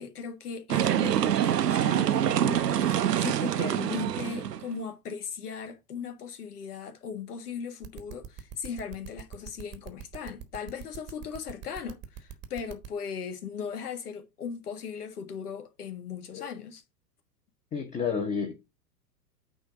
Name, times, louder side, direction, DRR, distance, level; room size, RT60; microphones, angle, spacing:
voice 1, 0.0-16.8, left 6 dB, 65° left, 1.7 m, -38 dB
sound 1, 0.7-4.7, right 10 dB, 75° right, 0.8 m, -25 dB
sound 2, 7.8-12.9, right 8 dB, 20° right, 1.0 m, -42 dB
voice 2, 17.7-18.5, left 6 dB, 15° left, 0.9 m, -30 dB
8.8 x 3.4 x 5.0 m
figure-of-eight pair, 100°, 49 cm